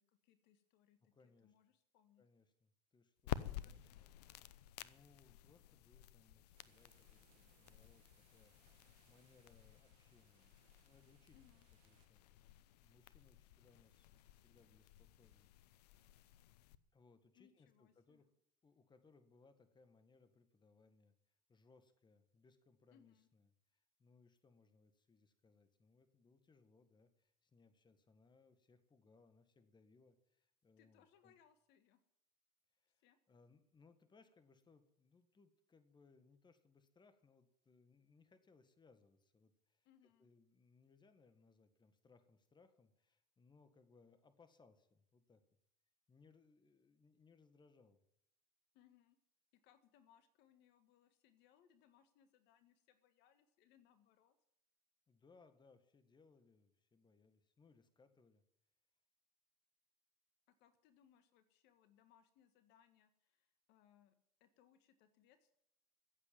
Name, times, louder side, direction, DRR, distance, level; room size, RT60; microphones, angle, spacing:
voice 1, 0.0-2.2 3.4-4.0 11.3-11.7 17.3-18.3 22.9-23.3 30.8-32.0 33.0-33.2 39.8-40.3 48.7-49.2 49.5-54.3 60.5-64.1 64.4-65.6, left 9 dB, 60° left, 11 dB, 1.6 m, -71 dB
voice 2, 1.1-1.5 2.2-4.1 4.5-10.5 10.8-11.4 11.8-12.3 12.8-15.5 16.9-18.3 18.6-31.3 32.7-39.9 40.2-45.4 46.1-48.0 55.1-58.4, left 4 dB, 20° left, 10 dB, 1.8 m, -70 dB
sound 1, 3.2-16.8, left 12 dB, 75° left, 0.8 m, -52 dB
sound 2, 6.5-12.1, right 13 dB, 70° right, 1.5 m, -76 dB
15.0 x 8.1 x 9.2 m, 0.74 s
hypercardioid pair, 85°, 20 cm